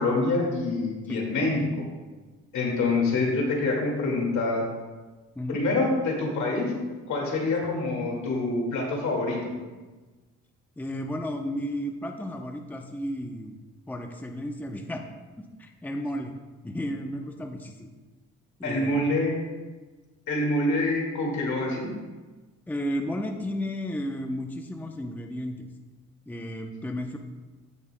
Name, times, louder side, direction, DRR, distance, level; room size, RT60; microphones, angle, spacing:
voice 1, 0.0-1.9 2.5-4.7 5.5-6.7 7.1-9.5 18.6-19.4 20.3-21.9, left 2 dB, 70° left, -1 dB, 2.1 m, -26 dB
voice 2, 2.9-3.2 5.4-5.6 10.8-13.6 13.9-15.0 15.4-16.3 16.6-17.9 18.6-19.1 22.7-25.7 26.3-27.2, equal, 5° left, 3 dB, 0.7 m, -33 dB
14.5 x 5.3 x 2.2 m, 1.3 s
cardioid pair, 90°, 30 cm